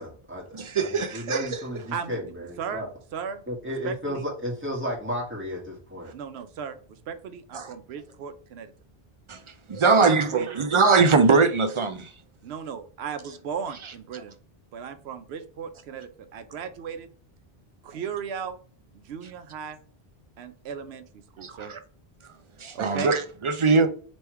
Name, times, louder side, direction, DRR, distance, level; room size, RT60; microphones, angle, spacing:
voice 1, 0.0-0.4 0.8-2.9 3.5-6.1, equal, 10° right, 1.6 m, -33 dB
voice 2, 0.5-1.5 7.5-7.7 9.3-9.4 9.7-12.1 21.4-21.8 22.6-23.9, right 4 dB, 50° right, 0.4 m, -21 dB
voice 3, 1.9-2.2 2.6-3.4 3.8-4.2 6.1-6.8 7.1-8.7 9.8-10.6 12.4-14.3 14.7-17.1 17.8-18.6 18.9-19.8 20.4-21.0 21.4-21.7 22.7-23.1, right 7 dB, 90° right, 0.8 m, -36 dB
3.4 x 3.1 x 4.4 m
omnidirectional pair, 1.0 m